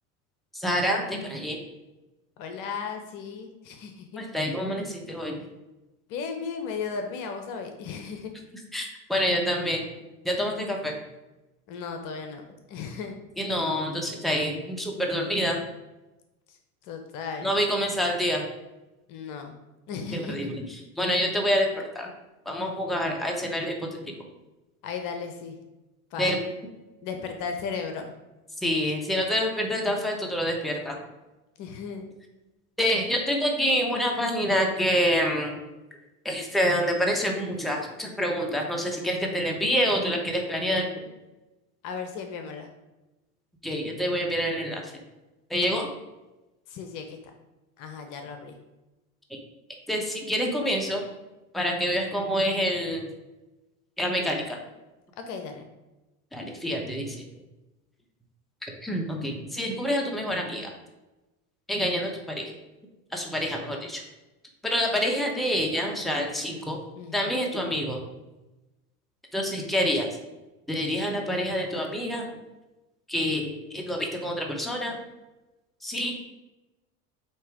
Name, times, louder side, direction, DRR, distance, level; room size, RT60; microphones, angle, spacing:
voice 1, 0.5-1.6 4.2-5.4 8.7-9.9 10.2-11.0 13.4-15.6 17.4-18.4 20.1-22.1 22.4-24.2 26.2-26.4 28.6-31.0 32.8-35.6 36.2-40.9 43.6-44.9 45.5-45.9 49.3-49.4 49.9-51.1 51.5-53.1 54.0-54.6 56.3-57.2 58.6-60.7 61.7-62.5 63.1-64.0 64.6-66.8 67.1-68.0 69.3-70.1 70.7-72.3 73.1-75.0 75.8-76.1, equal, ahead, 1 dB, 1.1 m, -27 dB
voice 2, 2.4-4.2 6.1-8.3 11.7-13.2 16.9-17.5 19.1-19.5 19.9-20.5 24.8-25.5 26.1-26.4 27.0-28.1 31.6-32.1 41.8-42.7 46.7-47.2 47.8-48.5 55.3-55.7 67.0-67.3, left 5 dB, 45° left, 6 dB, 0.9 m, -35 dB
8.0 x 2.9 x 4.8 m, 1.1 s
figure-of-eight pair, 70°, 43 cm